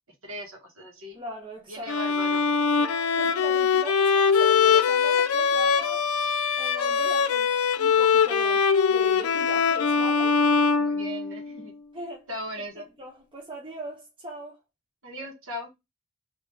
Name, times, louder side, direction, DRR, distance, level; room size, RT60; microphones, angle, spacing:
voice 1, 0.2-1.2 1.7-2.4 10.8-11.7 12.3-12.9 15.0-15.7, equal, 70° right, 1.4 m, -38 dB
voice 2, 1.1-2.0 2.8-6.1 6.5-10.4 11.9-12.3 12.6-14.6, equal, 25° right, 0.6 m, -40 dB
Bowed string instrument, 1.9-11.6, left 6 dB, 90° left, 0.4 m, -22 dB
3.0 x 2.8 x 3.3 m
head